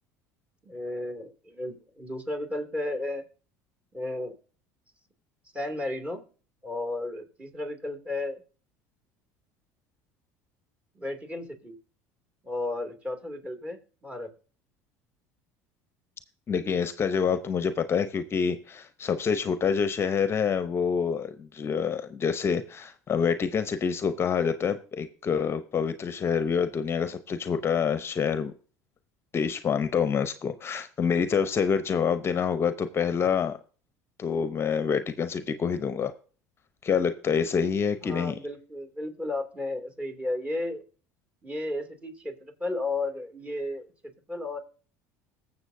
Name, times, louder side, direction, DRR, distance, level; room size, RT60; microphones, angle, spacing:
voice 1, 0.6-3.2 3.9-4.4 5.5-6.2 6.6-8.4 10.9-11.8 12.4-14.3 38.0-40.8 41.4-44.6, left 2 dB, 20° right, 5 dB, 2.4 m, -33 dB
voice 2, 16.5-28.5 29.3-33.6 34.2-36.1 36.8-38.4, left 6 dB, 35° left, 11 dB, 0.7 m, -27 dB
21.0 x 7.1 x 2.6 m, 0.39 s
supercardioid pair, 85°, 7 cm